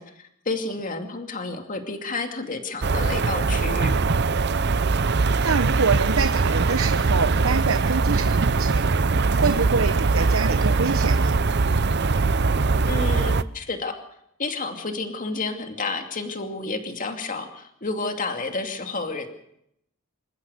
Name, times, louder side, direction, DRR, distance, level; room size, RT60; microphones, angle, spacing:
voice 1, 0.0-3.9 12.9-14.0 14.4-19.3, left 3 dB, 40° left, 5 dB, 2.5 m, -30 dB
sound 1, 2.8-13.4, right 4 dB, 50° right, 0.7 m, -21 dB
voice 2, 5.4-8.8 9.4-11.4, right 5 dB, 75° right, 9 dB, 1.0 m, -26 dB
27.5 x 14.5 x 6.7 m, 0.76 s
head